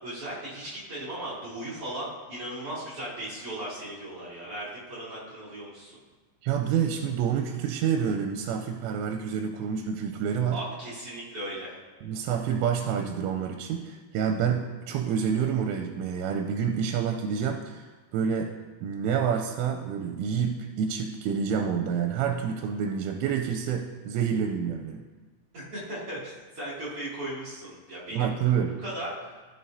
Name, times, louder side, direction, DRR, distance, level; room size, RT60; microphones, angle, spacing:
voice 1, 0.0-6.0 10.5-11.8 25.5-28.3 28.8-29.4, right 1 dB, 40° right, -9 dB, 2.3 m, -37 dB
voice 2, 6.4-10.6 12.0-18.5 18.8-25.0 28.1-28.8, right 7 dB, 85° right, 5 dB, 3.1 m, -28 dB
15.5 x 6.7 x 2.6 m, 1.3 s
omnidirectional pair, 5.6 m